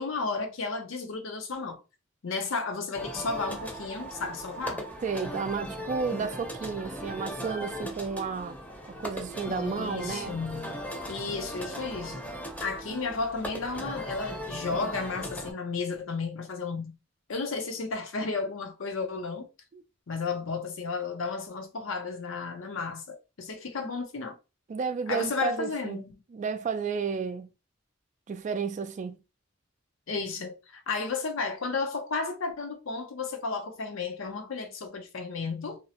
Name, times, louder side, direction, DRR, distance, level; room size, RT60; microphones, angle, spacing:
voice 1, 0.0-1.8 2.2-4.8 9.5-10.8 11.1-12.2 12.6-16.9 17.3-19.5 20.1-24.4 25.1-26.1 30.1-35.8, left 4 dB, 80° left, 0.6 m, -33 dB
sound 1, 2.9-15.5, equal, 10° left, 0.6 m, -38 dB
voice 2, 5.0-8.6 8.8-10.4 19.7-19.8 24.7-26.0 26.3-27.5 28.3-29.2, right 5 dB, 40° right, 0.3 m, -32 dB
2.6 x 2.0 x 2.8 m
head